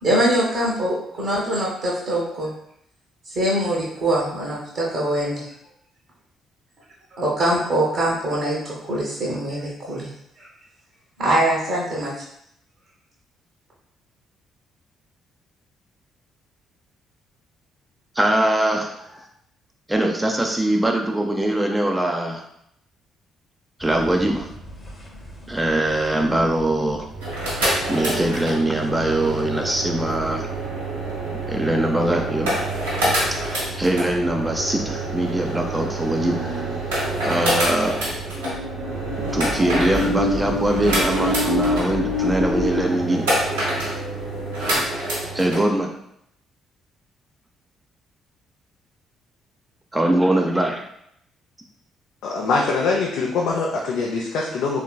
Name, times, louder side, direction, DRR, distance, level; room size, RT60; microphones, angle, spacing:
voice 1, 0.0-2.5 3.3-5.5 7.2-10.1 10.4-10.5 11.2-12.1, right 1 dB, 50° right, -5 dB, 0.9 m, -23 dB
voice 2, 18.2-19.3 19.9-22.4 23.8-24.5 25.5-27.1 27.9-30.5 31.5-32.5 33.3-33.4 33.8-36.8 37.2-37.9 39.3-43.3 45.3-45.9 49.9-50.8, right 1 dB, 15° right, 2 dB, 0.4 m, -22 dB
sound 1, 23.8-42.9, left 2 dB, 20° left, 0.8 m, -30 dB
sound 2, 27.1-45.6, right 1 dB, 80° right, 1.0 m, -27 dB
voice 3, 52.2-54.8, left 3 dB, 65° left, -2 dB, 0.4 m, -23 dB
3.6 x 2.6 x 2.2 m, 0.73 s
figure-of-eight pair, 45°, 0 cm